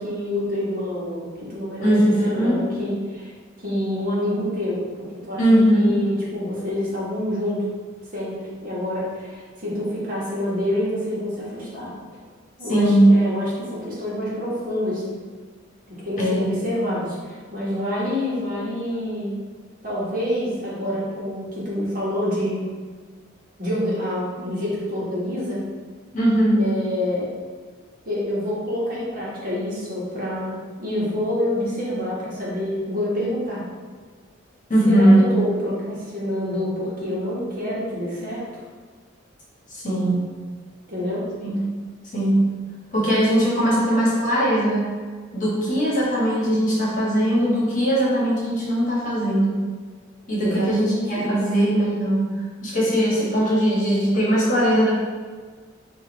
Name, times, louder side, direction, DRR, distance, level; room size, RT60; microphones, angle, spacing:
voice 1, 0.0-3.3 3.6-5.4 5.7-7.6 8.1-8.3 8.6-11.9 12.6-15.1 15.9-19.3 19.8-22.6 23.6-25.6 26.6-27.3 28.0-33.6 34.9-38.4 40.9-41.2 50.4-51.4, left 1 dB, 45° right, -7 dB, 1.3 m, -27 dB
voice 2, 1.8-2.6 5.4-5.9 12.7-13.1 16.2-16.4 26.1-26.6 34.7-35.3 39.7-40.2 41.4-41.5 42.1-42.5 42.9-44.9 45.3-49.6 50.3-50.8 51.1-52.3 52.6-54.9, right 1 dB, 40° left, -6 dB, 1.1 m, -19 dB
5.0 x 2.5 x 3.9 m, 1.5 s
head